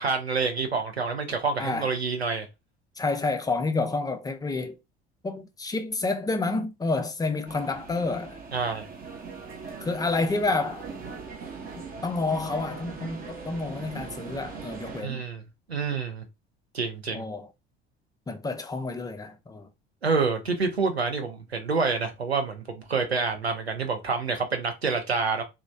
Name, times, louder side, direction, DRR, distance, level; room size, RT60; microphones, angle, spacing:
voice 1, 0.0-2.5 8.5-8.9 15.0-15.4 15.7-16.2 16.7-17.2 20.0-25.4, right 4 dB, 90° right, 0.5 m, -27 dB
voice 2, 1.6-1.9 3.0-4.8 5.2-8.4 9.8-10.9 11.8-15.2 17.1-17.5 18.3-19.7, left 3 dB, 15° left, 0.4 m, -29 dB
sound 1, 7.4-15.0, right 5 dB, 30° right, 0.7 m, -40 dB
3.0 x 2.0 x 2.5 m
figure-of-eight pair, 60°, 31 cm